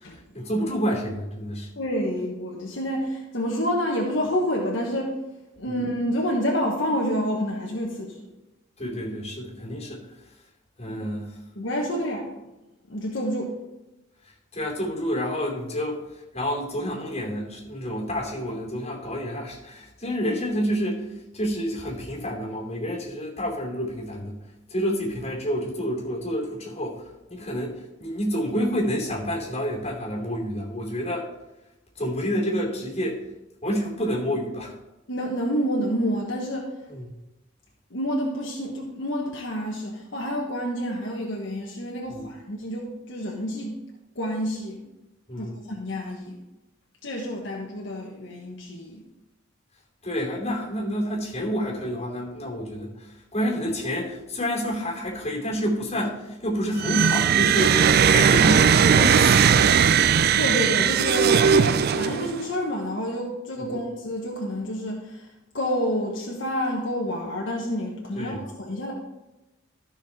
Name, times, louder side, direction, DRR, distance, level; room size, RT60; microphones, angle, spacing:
voice 1, 0.3-1.7 8.8-10.0 10.8-11.3 14.5-16.0 16.3-21.1 21.3-24.4 24.7-27.0 27.3-31.3 32.0-33.2 33.6-34.7 36.9-37.0 42.1-42.3 45.3-45.5 50.0-57.8 58.1-59.9 61.5-61.8 63.6-63.8 68.2-68.4, equal, 30° left, -3 dB, 2.7 m, -29 dB
voice 2, 1.8-5.2 5.6-8.3 10.9-11.0 11.5-12.3 12.9-13.6 35.1-36.7 37.9-43.8 44.1-44.8 45.4-46.4 47.0-49.0 60.3-68.9, equal, 65° left, -2 dB, 1.4 m, -28 dB
sound 1, 56.8-62.4, right 7 dB, 50° right, 0.4 m, -18 dB
13.5 x 5.9 x 4.3 m, 1.0 s
head